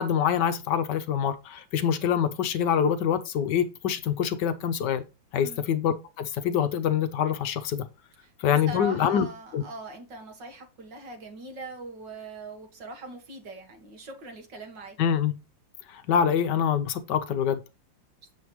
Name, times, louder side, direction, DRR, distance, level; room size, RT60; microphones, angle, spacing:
voice 1, 0.0-5.0 5.3-7.9 8.4-9.3 9.5-9.6 15.0-15.3 15.9-17.6, left 8 dB, 70° left, 1.3 m, -25 dB
voice 2, 8.2-15.0, right 1 dB, 70° right, 2.3 m, -41 dB
7.5 x 7.0 x 3.1 m
omnidirectional pair, 2.0 m